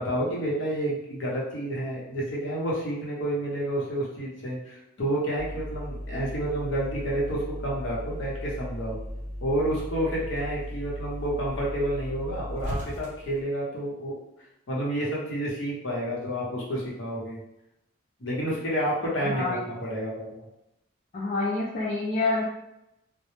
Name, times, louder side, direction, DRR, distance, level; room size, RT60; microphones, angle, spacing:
voice 1, 0.0-9.0 9.4-14.2 14.7-17.4 18.2-20.4, right 1 dB, 65° left, -5 dB, 0.7 m, -30 dB
sound 1, 5.4-13.4, equal, 35° right, 0.6 m, -36 dB
voice 2, 19.3-19.6 21.1-22.4, left 3 dB, 40° left, -7 dB, 0.4 m, -27 dB
2.0 x 2.0 x 3.0 m, 0.85 s
head